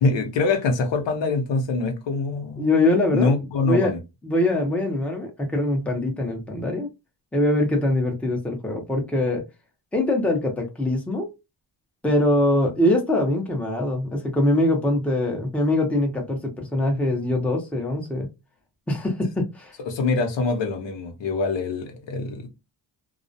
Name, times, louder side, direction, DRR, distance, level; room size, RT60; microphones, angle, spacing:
voice 1, 0.0-2.7 3.1-4.0 19.9-22.5, left 3 dB, 70° left, 0.8 m, -24 dB
voice 2, 2.6-3.3 3.6-3.9 4.2-6.9 7.3-9.4 9.9-11.3 12.0-18.3 18.9-19.7, left 1 dB, 5° left, 0.7 m, -23 dB
2.3 x 2.0 x 2.6 m
cardioid pair, 105°, 46 cm